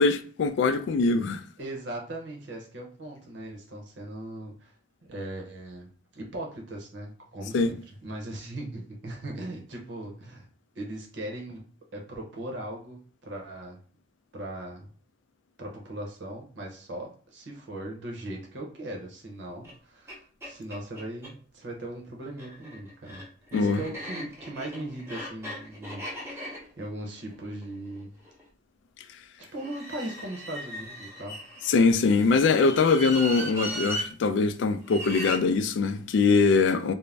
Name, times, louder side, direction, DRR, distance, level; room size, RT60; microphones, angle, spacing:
voice 1, 0.0-1.4 7.5-7.7 23.5-23.8 31.7-36.9, left 4 dB, 70° left, 0.3 m, -22 dB
voice 2, 1.6-4.7 5.1-10.5 10.7-11.7 11.9-13.8 14.3-14.9 15.6-23.2 23.5-28.1 29.4-31.4 31.6-31.7, right 1 dB, 70° right, 0.7 m, -39 dB
sound 1, 19.6-19.7 20.1-20.2 20.4-21.3 22.2-28.4 29.6-31.9 32.5-34.1 34.9-35.4, equal, 15° right, 0.6 m, -38 dB
2.5 x 2.0 x 3.2 m
head